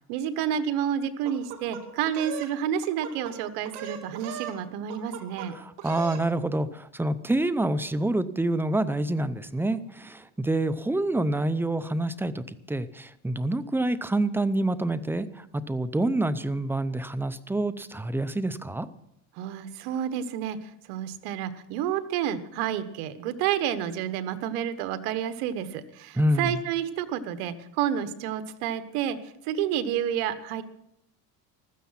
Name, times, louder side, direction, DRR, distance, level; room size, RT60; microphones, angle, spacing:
voice 1, 0.1-5.5 19.4-29.2 29.4-30.6, right 9 dB, 85° right, 12 dB, 1.3 m, -30 dB
sound 1, 1.2-2.5 2.8-3.3 3.6-4.6 4.9-5.5 5.8-6.2, right 9 dB, 65° right, 2.8 m, -38 dB
voice 2, 5.5-18.9 26.2-26.6, right 1 dB, 5° right, 14 dB, 0.5 m, -27 dB
15.5 x 12.5 x 5.7 m, 0.78 s
cardioid pair, 125°, 45 cm